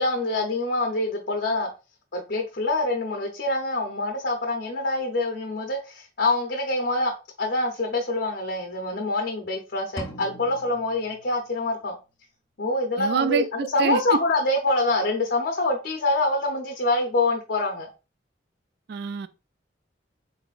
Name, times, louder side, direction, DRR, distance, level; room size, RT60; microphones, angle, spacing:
voice 1, 0.0-1.7 2.1-7.1 7.4-11.9 12.6-17.9, left 2 dB, 60° left, 0.6 m, -25 dB
sound 1, 10.0-11.9, left 1 dB, 20° left, 0.5 m, -41 dB
voice 2, 13.0-14.0 18.9-19.3, right 6 dB, 60° right, 0.3 m, -26 dB
3.9 x 3.9 x 2.4 m
head